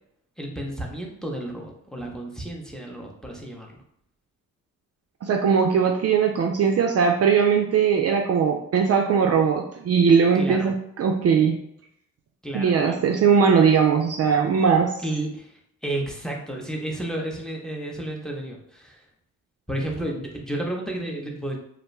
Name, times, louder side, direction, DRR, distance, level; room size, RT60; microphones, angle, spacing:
voice 1, 0.4-3.8 10.3-10.7 12.4-13.0 15.0-19.0 19.7-21.6, right 1 dB, ahead, -1 dB, 0.7 m, -32 dB
voice 2, 5.2-11.6 12.5-14.9, right 6 dB, 50° right, 2 dB, 0.4 m, -20 dB
2.5 x 2.1 x 3.1 m, 0.73 s
supercardioid pair, 60°, 34 cm